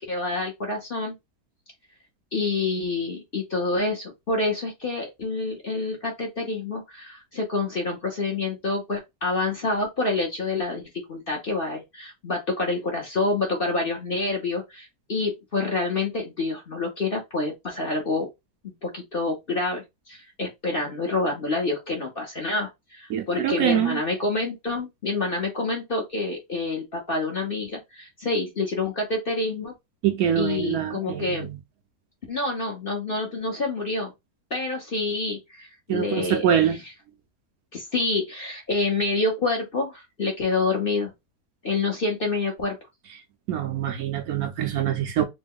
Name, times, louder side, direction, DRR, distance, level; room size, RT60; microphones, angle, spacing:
voice 1, 0.1-1.2 2.3-18.3 18.6-29.7 30.4-31.5 32.3-34.1 34.5-36.5 37.7-41.1 41.6-42.8, left 3 dB, 45° left, 0.8 m, -27 dB
voice 2, 23.1-24.0 30.0-31.6 35.9-36.8 43.5-45.2, right 9 dB, 70° right, 1.0 m, -24 dB
3.2 x 2.2 x 3.5 m
omnidirectional pair, 1.8 m